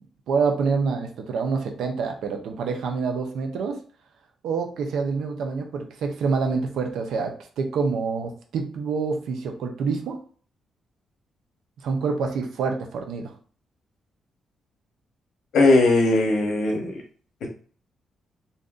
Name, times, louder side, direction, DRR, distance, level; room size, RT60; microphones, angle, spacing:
voice 1, 0.3-3.8 4.4-10.2 11.8-13.3, right 5 dB, 80° right, 4 dB, 0.6 m, -27 dB
voice 2, 15.5-17.0 17.4-17.5, left 2 dB, 80° left, 2 dB, 0.8 m, -19 dB
2.6 x 2.6 x 3.6 m, 0.42 s
cardioid pair, 120°, 0 cm